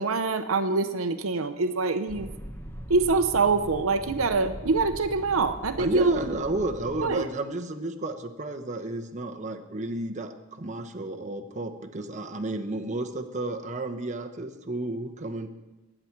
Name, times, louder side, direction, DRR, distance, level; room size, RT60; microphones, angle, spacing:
voice 1, 0.0-2.3 2.9-6.1 7.0-7.3, right 3 dB, 85° right, 8 dB, 0.8 m, -25 dB
train journey, 2.1-7.1, equal, 10° left, 1.2 m, -41 dB
voice 2, 5.8-15.5, right 2 dB, 35° right, 5 dB, 1.0 m, -32 dB
21.0 x 8.9 x 4.6 m, 1.1 s
head